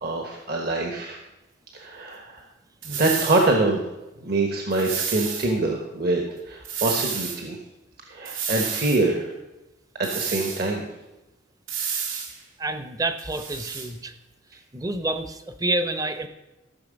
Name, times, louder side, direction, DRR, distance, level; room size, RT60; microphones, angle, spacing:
voice 1, 0.0-1.2 1.7-2.4 2.8-3.8 4.2-7.6 8.1-9.3 10.0-10.9, right 2 dB, 50° right, 2 dB, 1.2 m, -25 dB
sound 1, 2.8-3.5 4.7-5.5 6.6-7.4 8.2-9.0 10.0-10.7 11.7-12.3 13.2-13.9, right 7 dB, 80° right, 1.9 m, -30 dB
voice 2, 12.6-14.1 14.7-16.3, right 2 dB, 20° right, 9 dB, 0.7 m, -28 dB
14.0 x 6.6 x 5.2 m, 1.0 s
head